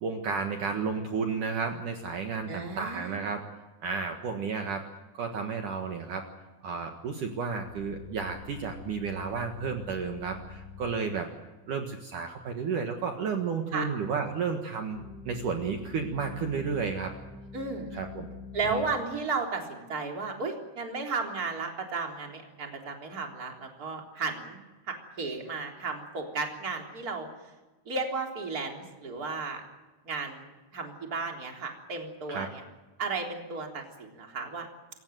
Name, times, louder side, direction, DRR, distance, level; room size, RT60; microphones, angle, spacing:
voice 1, 0.0-3.4 3.8-4.8 5.1-6.2 6.6-11.3 11.7-15.0 15.3-17.1 17.9-18.3 18.6-18.8 32.3-32.5, right 5 dB, 55° right, 4 dB, 2.6 m, -32 dB
voice 2, 2.5-3.2 13.7-13.9 17.5-17.9 18.5-24.6 24.9-27.3 27.9-29.6 30.1-32.6 33.0-34.7, right 4 dB, 20° right, 2 dB, 3.5 m, -34 dB
sound 1, 7.6-11.0 14.9-19.0, left 5 dB, 65° left, 4.5 m, -45 dB
27.0 x 16.0 x 9.2 m, 1.2 s
omnidirectional pair, 5.2 m